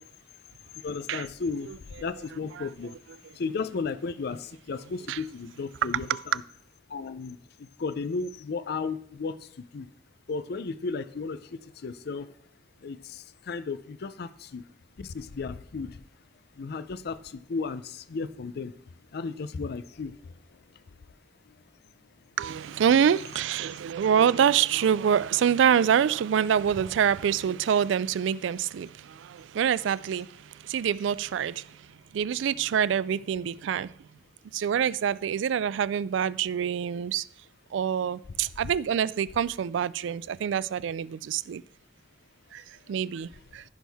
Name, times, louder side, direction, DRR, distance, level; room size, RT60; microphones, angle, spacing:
voice 1, 0.7-3.0 3.3-6.1 6.9-9.9 10.3-12.3 12.8-14.7 15.0-16.0 16.6-18.7 19.1-20.6 21.5-21.6 42.9-43.0, left 4 dB, 55° left, 0.5 m, -34 dB
voice 2, 22.4-31.9 32.1-33.9 34.5-37.3 37.7-41.6 42.5-43.6, right 8 dB, 70° right, 0.3 m, -26 dB
14.5 x 6.2 x 3.4 m
head